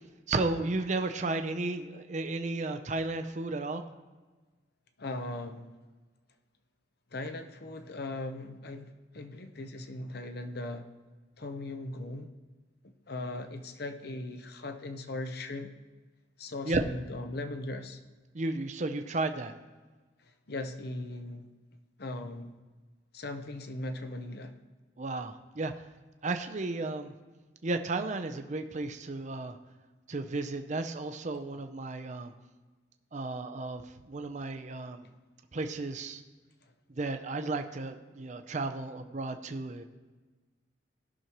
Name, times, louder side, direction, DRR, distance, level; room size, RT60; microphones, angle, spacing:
voice 1, 0.3-3.8 16.7-16.8 18.3-19.5 25.0-25.7 26.2-27.1 27.6-29.6 30.1-32.3 33.1-35.1 35.5-36.2 36.9-39.8, right 2 dB, 40° right, 7 dB, 0.6 m, -33 dB
voice 2, 5.0-5.7 7.1-10.9 11.4-12.3 13.1-15.7 16.4-18.0 20.5-21.5 22.0-22.6 23.1-24.6, left 2 dB, 55° left, 8 dB, 0.8 m, -39 dB
18.0 x 6.3 x 3.0 m, 1.3 s
head